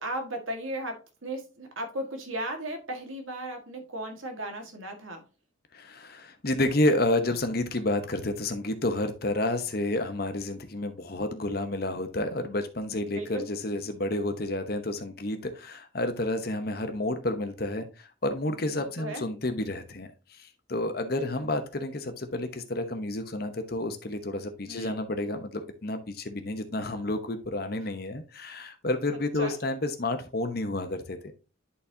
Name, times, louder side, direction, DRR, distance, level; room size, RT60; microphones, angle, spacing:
voice 1, 0.0-5.2 12.8-13.5 18.5-19.2 21.1-21.5 24.7-25.0 29.1-29.6, right 1 dB, 85° right, 4 dB, 1.8 m, -36 dB
voice 2, 5.7-31.4, left 1 dB, 50° left, 8 dB, 0.9 m, -30 dB
10.5 x 4.2 x 2.7 m, 0.32 s
head